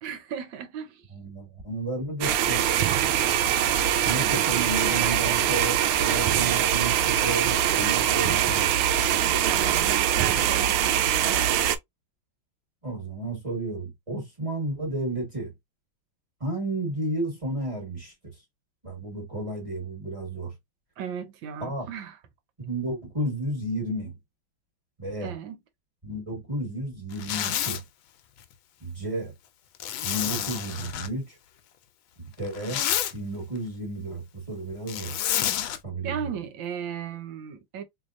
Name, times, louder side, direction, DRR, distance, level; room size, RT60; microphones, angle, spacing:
voice 1, 0.0-1.1 4.2-5.1 9.1-11.4 21.0-22.2 25.2-25.6 36.0-37.8, right 8 dB, 70° right, 1.4 m, -36 dB
voice 2, 1.1-3.0 4.0-8.7 12.8-15.5 16.4-18.1 18.8-20.5 21.6-21.9 22.6-24.1 25.0-25.3 26.0-27.8 28.8-29.3 30.0-31.4 32.2-32.8 33.1-35.2 35.8-36.3, right 2 dB, 20° right, 1.2 m, -32 dB
sound 1, 2.2-11.8, right 10 dB, 90° right, 1.4 m, -23 dB
Zipper (clothing), 27.1-27.8 29.8-31.1 32.4-33.1 34.9-35.8, left 11 dB, 80° left, 1.4 m, -29 dB
3.7 x 3.3 x 2.5 m
omnidirectional pair, 2.2 m